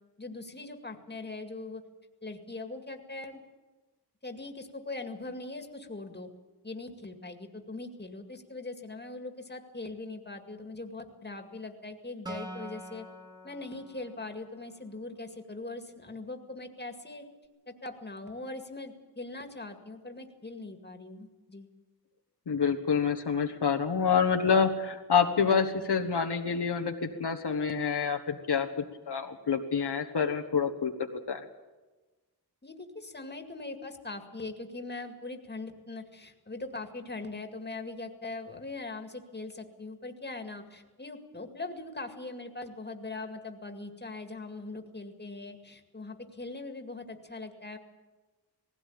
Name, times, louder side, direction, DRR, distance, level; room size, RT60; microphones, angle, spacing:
voice 1, 0.2-1.8 2.2-3.4 4.2-6.3 6.6-13.1 13.4-17.3 17.7-21.7 32.6-47.8, left 2 dB, 25° left, 5 dB, 2.1 m, -41 dB
Acoustic guitar, 12.3-15.7, right 1 dB, 10° right, 2.3 m, -46 dB
voice 2, 22.5-28.7 29.1-31.4, left 6 dB, 80° left, 4 dB, 1.5 m, -27 dB
19.0 x 16.0 x 8.7 m, 1.2 s
wide cardioid pair, 100°, 39 cm